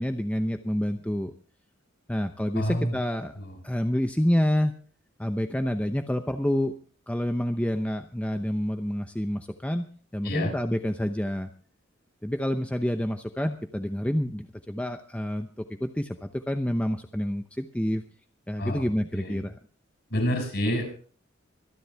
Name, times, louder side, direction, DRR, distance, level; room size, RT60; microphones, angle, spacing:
voice 1, 0.0-1.3 2.1-3.3 3.6-4.7 5.2-6.7 7.1-9.8 10.1-11.5 12.2-15.5 15.8-18.0 18.5-19.6, equal, 5° left, 6 dB, 0.8 m, -28 dB
voice 2, 2.5-2.9 3.3-3.6 10.2-10.5 18.6-19.4 20.1-21.0, equal, 55° left, 3 dB, 6.7 m, -29 dB
25.0 x 11.0 x 3.5 m, 0.40 s
head